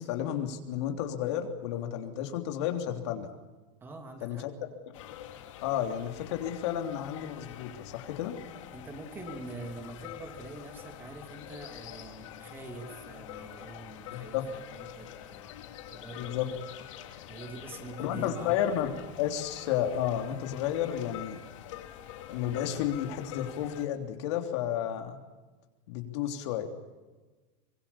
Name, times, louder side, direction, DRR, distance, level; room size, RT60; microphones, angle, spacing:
voice 1, 0.0-3.3 4.2-4.5 5.6-8.4 14.1-14.4 16.2-16.5 18.0-21.4 22.3-25.2 25.9-26.7, left 10 dB, 65° left, 4 dB, 3.3 m, -32 dB
voice 2, 3.8-4.5 8.7-15.5 15.9-16.4 17.3-18.6, right 3 dB, 15° right, 4 dB, 2.8 m, -45 dB
sound 1, 4.9-23.9, left 11 dB, 85° left, 3.1 m, -46 dB
25.0 x 23.0 x 7.1 m, 1.2 s
supercardioid pair, 180°, 16 cm